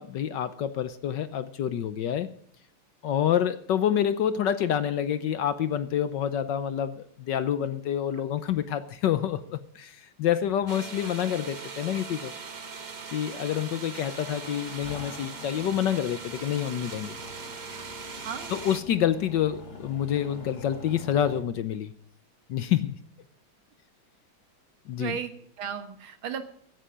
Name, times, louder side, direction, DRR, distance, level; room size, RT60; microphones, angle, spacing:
voice 1, 0.0-2.3 3.0-12.3 13.1-17.2 18.5-21.9 22.5-23.0 24.9-25.1, left 10 dB, 65° left, 13 dB, 1.2 m, -27 dB
sound 1, 10.7-18.8, right 5 dB, 40° right, 0.6 m, -40 dB
sound 2, 12.3-21.4, left 3 dB, 45° left, 2.7 m, -46 dB
voice 2, 25.0-26.4, right 7 dB, 75° right, 9 dB, 2.2 m, -35 dB
15.5 x 10.0 x 5.1 m, 0.63 s
omnidirectional pair, 2.3 m